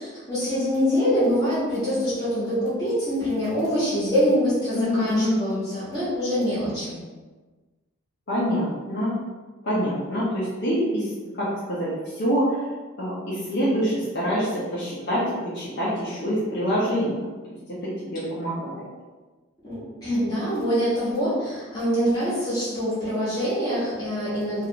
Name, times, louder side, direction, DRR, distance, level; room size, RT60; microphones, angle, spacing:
voice 1, 0.0-7.0 19.6-24.7, equal, 20° left, -11 dB, 1.4 m, -24 dB
voice 2, 4.7-5.4 8.3-9.1 9.6-12.7 13.0-17.3 17.7-18.7, equal, 55° left, -9 dB, 0.7 m, -26 dB
2.9 x 2.5 x 2.9 m, 1.3 s
head